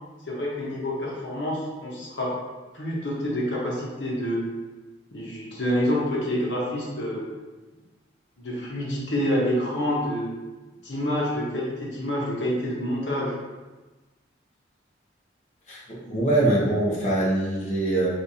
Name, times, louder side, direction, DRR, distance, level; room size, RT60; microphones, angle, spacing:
voice 1, 0.3-2.3 2.7-4.4 5.1-7.3 8.4-10.3 10.8-13.3, equal, 70° left, -4 dB, 1.0 m, -27 dB
voice 2, 15.7-18.1, right 2 dB, 40° left, -6 dB, 1.0 m, -23 dB
3.2 x 2.5 x 4.1 m, 1.2 s
head